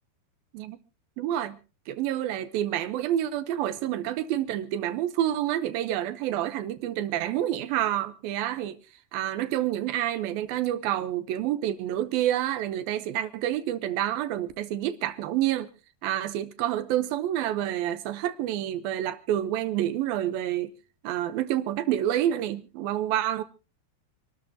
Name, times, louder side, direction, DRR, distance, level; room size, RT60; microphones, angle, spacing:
voice 1, 1.2-1.6 1.9-8.8 9.1-15.7 16.0-20.7 21.0-23.4, right 12 dB, 75° right, 2.5 m, -28 dB
27.5 x 13.0 x 2.8 m
omnidirectional pair, 4.6 m